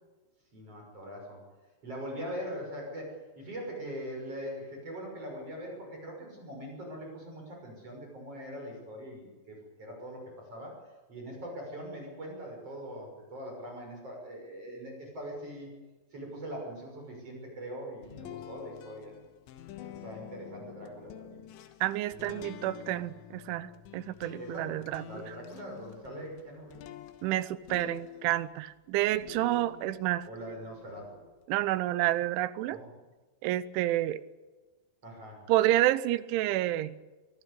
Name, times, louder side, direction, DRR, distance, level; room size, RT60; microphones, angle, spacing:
voice 1, 0.5-1.4 1.8-10.2 10.5-10.8 11.1-15.7 16.1-19.1 19.8-21.5 24.4-24.7 25.0-26.8 30.3-31.2 32.7-32.9 35.0-35.4, equal, 30° right, 0 dB, 6.9 m, -42 dB
sound 1, 18.0-28.6 29.1-31.4, left 12 dB, 80° left, 3.5 m, -48 dB
voice 2, 21.8-25.4 27.2-30.3 31.5-32.8 33.4-34.2 35.5-36.9, right 14 dB, 85° right, 16 dB, 3.3 m, -29 dB
24.0 x 18.0 x 8.4 m, 1.3 s
omnidirectional pair, 5.3 m